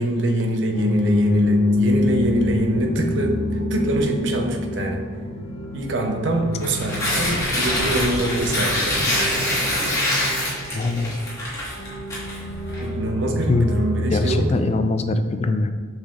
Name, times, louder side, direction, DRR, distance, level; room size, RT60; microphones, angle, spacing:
voice 1, 0.0-5.0 5.7-9.0 9.5-9.6 12.8-14.7, right 1 dB, 60° right, 3 dB, 0.7 m, -24 dB
sound 1, 0.7-14.4, left 2 dB, 90° left, 0.9 m, -26 dB
Tearing, 6.5-12.8, left 1 dB, 15° left, 1.6 m, -24 dB
voice 2, 10.7-11.2 13.5-13.7 14.1-15.7, left 3 dB, 30° left, 8 dB, 0.3 m, -22 dB
7.1 x 5.6 x 2.5 m, 1.5 s
head